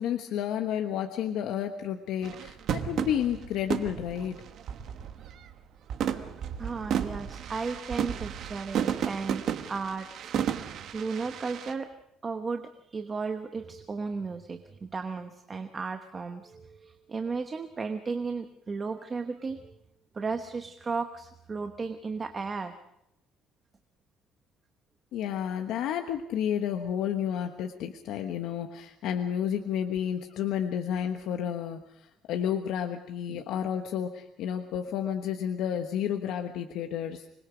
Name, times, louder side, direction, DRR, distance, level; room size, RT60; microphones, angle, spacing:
voice 1, 0.0-4.4 25.1-37.3, left 9 dB, 70° left, 5 dB, 1.2 m, -31 dB
sound 1, 2.2-5.5 5.9-11.7, right 9 dB, 50° right, 1.3 m, -33 dB
voice 2, 6.6-11.9 12.2-19.8 20.1-22.7 33.3-33.4, right 4 dB, 20° right, 7 dB, 1.0 m, -35 dB
25.5 x 21.0 x 5.1 m, 0.79 s
cardioid pair, 165°, 0 cm